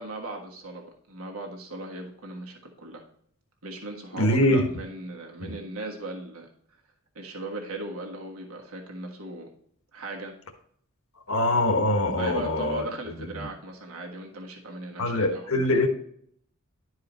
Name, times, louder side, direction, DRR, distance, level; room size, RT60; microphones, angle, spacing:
voice 1, 0.0-3.0 3.6-6.5 7.1-9.5 9.9-10.3 12.2-15.8, right 2 dB, 80° right, 1 dB, 1.4 m, -38 dB
voice 2, 4.1-4.6 5.5-5.6 11.3-12.8 13.4-13.5 15.0-15.9, left 1 dB, 70° left, 4 dB, 1.3 m, -23 dB
11.5 x 4.8 x 3.0 m, 0.66 s
head